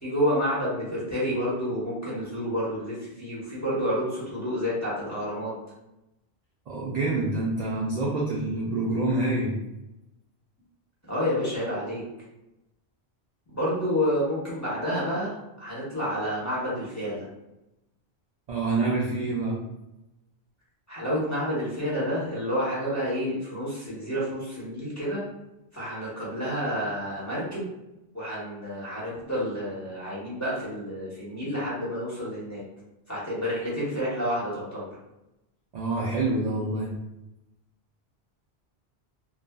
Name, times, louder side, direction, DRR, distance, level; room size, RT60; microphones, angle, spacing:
voice 1, 0.0-5.5 11.1-12.0 13.5-17.3 20.9-25.2 25.7-27.7 28.1-32.6 33.1-34.9, equal, 15° left, -9 dB, 0.8 m, -29 dB
voice 2, 6.7-9.6 18.5-19.6 35.7-36.9, right 2 dB, 55° right, -4 dB, 0.5 m, -27 dB
2.6 x 2.3 x 2.2 m, 0.94 s
omnidirectional pair, 1.1 m